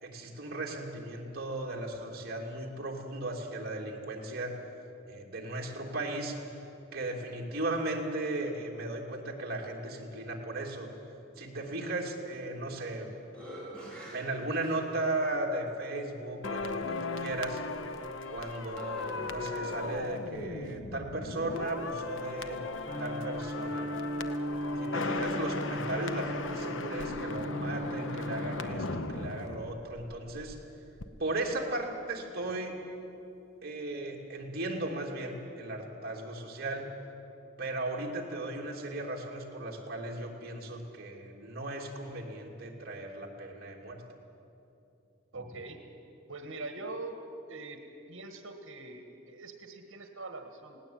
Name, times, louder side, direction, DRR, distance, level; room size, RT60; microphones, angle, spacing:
voice 1, 0.0-4.6 5.1-6.4 6.9-10.9 11.4-13.1 14.1-17.6 18.3-22.6 23.0-24.0 24.8-30.6 31.2-32.7 33.6-36.9 37.6-44.0, right 2 dB, 50° right, -1 dB, 2.9 m, -36 dB
sound 1, 12.5-12.9 13.3-15.2 15.9-16.0 17.8-19.5, right 1 dB, 5° left, 4.7 m, -48 dB
sound 2, 16.4-30.6 30.8-31.1, left 3 dB, 70° left, 0.9 m, -37 dB
sound 3, 22.9-28.6, equal, 20° right, 1.6 m, -37 dB
voice 2, 24.7-25.0 45.3-45.8 46.3-47.2 47.5-47.8 48.1-50.8, right 3 dB, 75° right, 5 dB, 1.6 m, -43 dB
19.0 x 17.5 x 8.8 m, 2.8 s
head